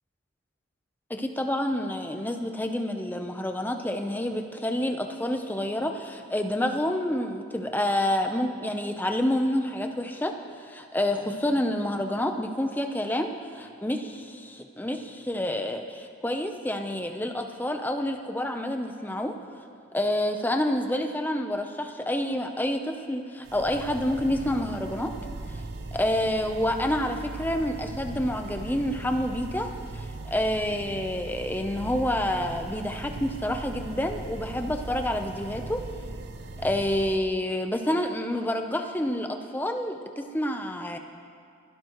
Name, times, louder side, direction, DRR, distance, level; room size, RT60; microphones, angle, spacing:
voice 1, 1.1-10.3 10.7-13.3 13.5-19.3 19.9-25.1 25.9-35.8 36.6-41.0, left 1 dB, 10° left, 5 dB, 0.7 m, -28 dB
sound 1, 23.4-37.2, right 2 dB, 55° right, 0.7 m, -39 dB
27.5 x 11.0 x 3.1 m, 2.2 s
head